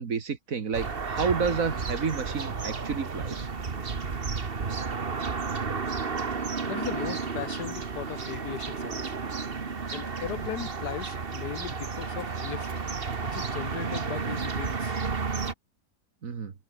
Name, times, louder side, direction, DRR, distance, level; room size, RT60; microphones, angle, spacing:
voice 1, 0.0-3.5 16.2-16.5, right 5 dB, 55° right, 2.0 m, -30 dB
sound 1, 0.7-15.5, right 5 dB, 35° right, 1.6 m, -32 dB
voice 2, 6.7-9.1 9.9-12.7 13.2-15.0, left 10 dB, 75° left, 1.5 m, -38 dB
omnidirectional pair, 1.8 m